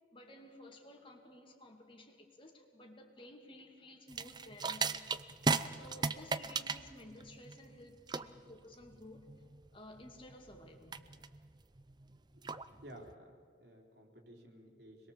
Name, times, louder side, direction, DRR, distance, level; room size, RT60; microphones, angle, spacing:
voice 1, 0.1-9.3 9.7-11.0, left 1 dB, 30° left, 2.5 m, -55 dB
sound 1, 4.1-13.1, right 4 dB, 25° right, 0.6 m, -38 dB
voice 2, 12.3-13.3 13.6-15.1, right 1 dB, 60° right, 4.0 m, -55 dB
26.5 x 21.0 x 7.4 m
head